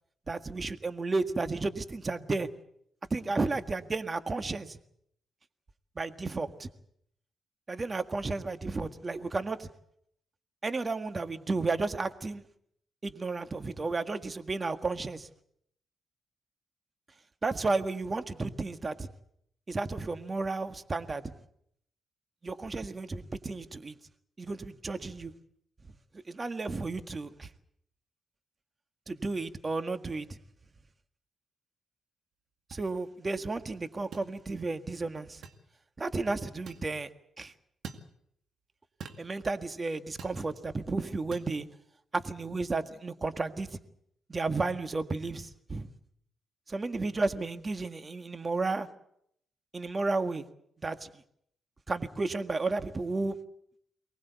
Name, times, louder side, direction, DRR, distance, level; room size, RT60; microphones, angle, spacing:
voice 1, 0.3-2.5 3.1-4.8 6.0-6.7 7.7-9.7 10.6-12.4 13.0-15.3 17.4-19.1 19.7-21.3 22.4-24.0 24.4-25.3 26.1-27.5 29.1-30.4 32.7-35.4 36.0-37.1 37.4-37.5 39.2-41.7 42.1-43.8 44.3-45.9 46.7-48.9 49.7-50.5 50.8-51.1 51.9-53.4, right 3 dB, 35° right, 9 dB, 1.7 m, -33 dB
sound 1, 32.7-32.9 34.1-34.3 35.4-35.6 36.7-36.9 37.8-38.1 39.0-39.3 40.2-40.4 41.3-41.5, right 6 dB, 65° right, 2.2 m, -44 dB
23.5 x 19.0 x 8.2 m, 0.72 s
supercardioid pair, 50°, 0 cm